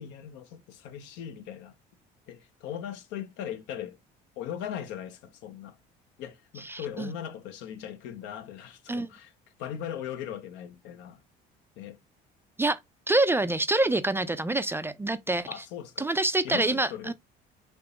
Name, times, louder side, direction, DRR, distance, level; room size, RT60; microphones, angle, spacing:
voice 1, 0.0-1.7 2.3-4.0 4.4-5.8 6.2-9.3 9.6-11.2 11.8-12.0 15.5-16.1 16.4-17.1, left 9 dB, 75° left, 0.7 m, -39 dB
voice 2, 6.6-7.1 8.9-9.1 12.6-12.8 13.1-15.6 16.0-17.1, right 2 dB, 10° right, 0.3 m, -26 dB
3.5 x 2.9 x 3.7 m
supercardioid pair, 95°, 19 cm